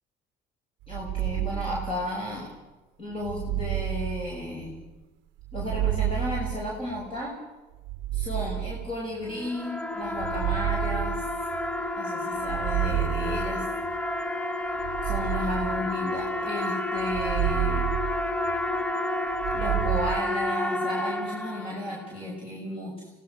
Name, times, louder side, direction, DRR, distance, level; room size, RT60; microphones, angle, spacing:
sound 1, 0.8-2.4 3.2-4.9 5.4-7.2 7.8-9.4 10.1-11.8 12.4-14.0 14.8-16.4 17.0-18.8 19.3-20.2, right 13 dB, 85° right, 0.7 m, -31 dB
voice 1, 0.9-2.5 3.0-4.9 5.5-7.3 8.1-11.2 11.9-13.6 15.1-17.9 19.5-23.1, left 1 dB, 30° left, -3 dB, 6.2 m, -34 dB
sound 2, 9.3-22.0, left 1 dB, 5° left, 0.9 m, -30 dB
25.5 x 17.5 x 6.4 m, 1.2 s
cardioid pair, 115°, 19 cm